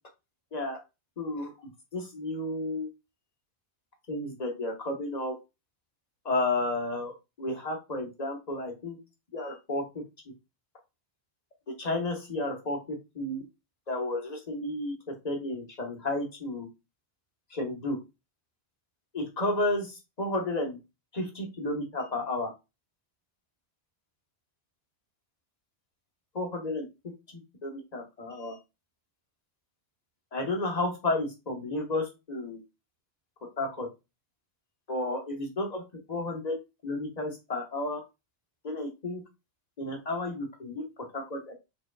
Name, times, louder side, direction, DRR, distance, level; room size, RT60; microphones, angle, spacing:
voice 1, 1.2-1.5 1.9-2.9 4.1-5.3 6.2-9.0 9.3-10.0 11.8-13.4 13.9-14.9 15.2-16.7 17.5-18.0 19.1-20.8 21.1-22.5 26.3-26.9 27.3-28.6 30.3-32.6 33.6-33.9 34.9-35.8 36.1-38.0 38.6-39.2 39.8-40.8 41.1-41.5, left 2 dB, 35° left, 1 dB, 1.2 m, -32 dB
5.0 x 3.9 x 2.3 m, 0.25 s
omnidirectional pair, 1.2 m